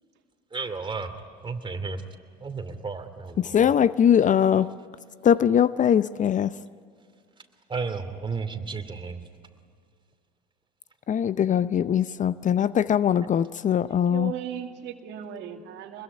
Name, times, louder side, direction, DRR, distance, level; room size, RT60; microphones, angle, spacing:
voice 1, 0.5-1.1 1.4-2.0 2.4-3.7 7.7-9.2, right 4 dB, 25° right, 7 dB, 2.7 m, -33 dB
voice 2, 3.4-4.7 5.2-6.5 11.1-14.3, left 9 dB, 40° left, 16 dB, 0.7 m, -21 dB
voice 3, 13.9-16.0, right 9 dB, 60° right, 5 dB, 2.3 m, -37 dB
25.0 x 21.5 x 9.8 m, 2.2 s
hypercardioid pair, 65°, 20 cm